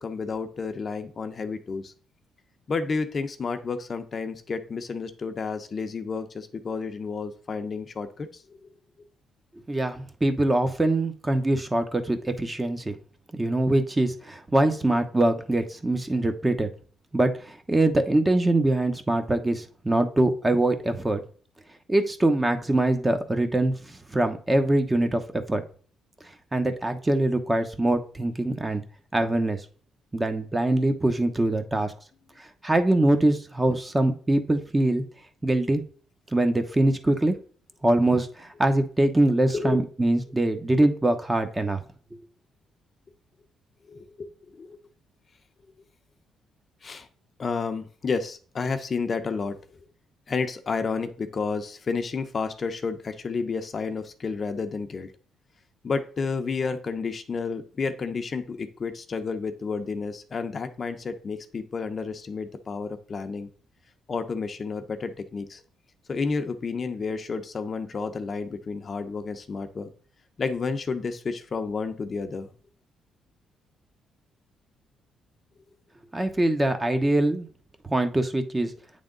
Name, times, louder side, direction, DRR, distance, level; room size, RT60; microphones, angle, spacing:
voice 1, 0.0-1.9 2.7-8.7 39.5-39.8 43.9-44.8 46.8-47.1 47.4-49.6 50.3-55.1 55.8-63.5 64.1-65.6 66.1-69.9 70.4-72.5, left 4 dB, 40° left, 8 dB, 0.7 m, -31 dB
voice 2, 9.7-12.9 13.3-16.7 17.1-21.2 21.9-25.6 26.5-28.8 29.1-29.6 30.1-31.9 32.6-35.0 35.4-35.8 36.3-37.4 37.8-41.8 76.1-77.5 77.8-78.7, right 1 dB, 20° right, 7 dB, 0.9 m, -23 dB
8.7 x 3.5 x 3.8 m, 0.43 s
cardioid pair, 90°, 0 cm